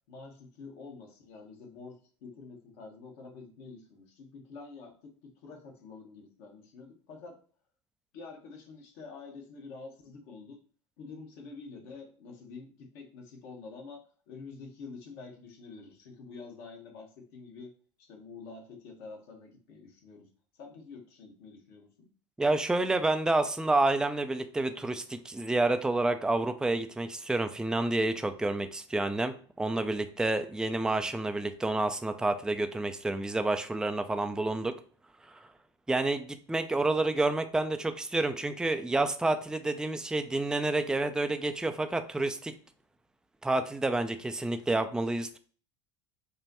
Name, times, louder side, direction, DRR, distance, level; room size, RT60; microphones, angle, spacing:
voice 1, 0.1-7.3 8.1-10.6 11.0-17.7 18.0-20.3 20.5-22.1, left 4 dB, 65° left, 2 dB, 1.3 m, -47 dB
voice 2, 22.4-34.8 35.3-35.4 35.9-42.5 43.4-45.4, right 2 dB, 5° right, 8 dB, 0.4 m, -29 dB
5.2 x 2.2 x 2.9 m, 0.42 s
hypercardioid pair, 80°, 15 cm